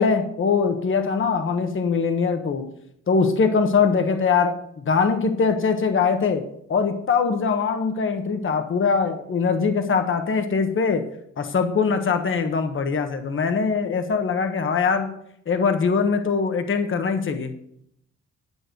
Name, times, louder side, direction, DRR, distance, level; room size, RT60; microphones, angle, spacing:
voice 1, 0.0-2.7 3.1-6.4 6.7-11.0 11.4-15.1 15.5-17.5, left 5 dB, 40° left, 7 dB, 1.3 m, -22 dB
11.0 x 6.4 x 7.9 m, 0.71 s
wide cardioid pair, 140°, 31 cm